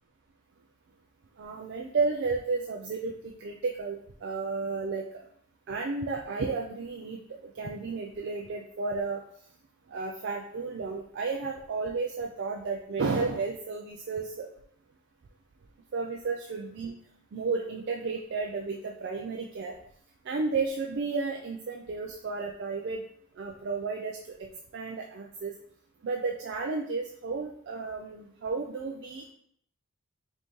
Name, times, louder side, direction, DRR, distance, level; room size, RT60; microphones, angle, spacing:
voice 1, 1.4-5.0 5.7-9.2 9.9-14.5 15.9-17.0 17.3-19.7 20.2-23.0 23.4-24.2 24.7-25.5 26.0-29.3, right 4 dB, 55° right, 1 dB, 0.4 m, -32 dB
5.3 x 2.7 x 3.1 m, 0.65 s
head